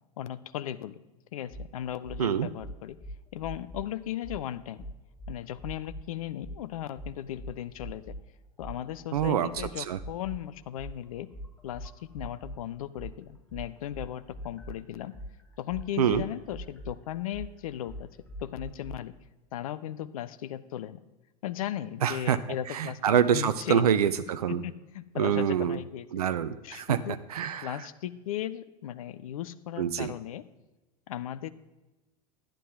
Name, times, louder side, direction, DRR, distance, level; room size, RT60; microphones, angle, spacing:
voice 1, 0.2-1.0 1.3-3.0 3.3-4.9 5.3-8.2 8.6-11.3 11.6-15.1 15.6-18.1 18.4-19.1 19.5-21.0 21.4-23.0 23.3-24.0 24.5-26.1 26.6-27.2 27.6-30.4 31.1-31.5, left 11 dB, 60° left, 14 dB, 0.6 m, -37 dB
sound 1, 1.5-1.7 2.0-2.2 2.6-3.9 4.2-4.4 4.8-6.0 6.4-6.6 6.9-8.2 8.6-12.6 12.9-18.9, equal, 5° left, 2.9 m, -42 dB
voice 2, 9.1-9.5 9.9-10.0 16.0-16.2 22.0-22.4 22.7-24.6 25.2-25.8 26.1-27.0 27.3-27.7 29.8-30.1, right 8 dB, 70° right, 12 dB, 0.5 m, -25 dB
11.5 x 10.5 x 3.5 m, 1.1 s
figure-of-eight pair, 85°, 20 cm